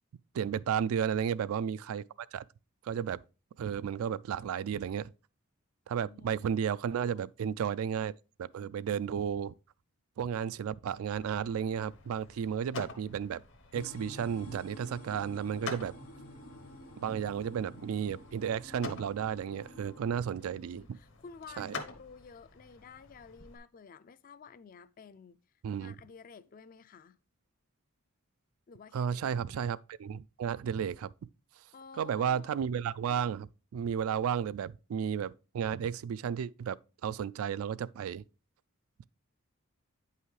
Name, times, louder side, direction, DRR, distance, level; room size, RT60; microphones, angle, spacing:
voice 1, 0.3-2.0 2.3-2.4 2.8-3.2 3.6-5.1 5.9-8.1 8.4-9.5 10.2-13.4 13.7-15.9 17.0-21.0 21.6-21.8 25.6-25.9 28.9-31.1 32.0-36.8 37.0-38.2, right 8 dB, 75° right, 0.3 m, -33 dB
voice 2, 5.9-7.3 20.2-25.4 25.8-27.2 28.7-29.6 31.7-32.5, left 5 dB, 40° left, 0.4 m, -52 dB
sound 1, 11.0-23.6, left 4 dB, 60° left, 0.9 m, -48 dB
sound 2, 13.7-20.2, left 1 dB, 85° left, 1.4 m, -50 dB
8.8 x 5.6 x 3.2 m
head